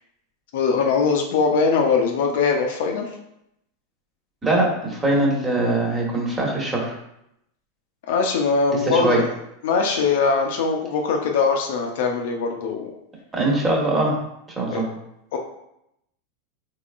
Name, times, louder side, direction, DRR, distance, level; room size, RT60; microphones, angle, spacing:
voice 1, 0.5-3.1 8.1-9.3 9.6-12.9 14.7-14.8 15.3-15.4, left 4 dB, 70° left, 2 dB, 0.6 m, -21 dB
voice 2, 4.4-6.9 8.9-9.2 13.3-14.1 14.6-14.9, right 2 dB, 20° right, -2 dB, 1.3 m, -21 dB
3.6 x 3.6 x 2.5 m, 0.79 s
hypercardioid pair, 105°, 0 cm